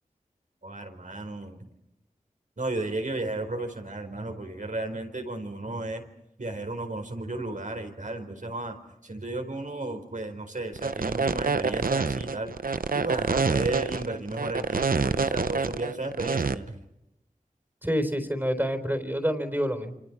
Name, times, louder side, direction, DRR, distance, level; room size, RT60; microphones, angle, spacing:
voice 1, 0.6-1.7 2.6-6.0 6.4-8.8 9.0-12.6 12.9-16.8, right 2 dB, 60° right, 5 dB, 4.4 m, -33 dB
sound 1, 10.7-16.5, right 4 dB, 80° right, 0.8 m, -26 dB
voice 2, 17.8-20.0, equal, 15° right, 7 dB, 4.0 m, -27 dB
27.5 x 27.0 x 6.1 m, 0.88 s
wide cardioid pair, 45°, 14 cm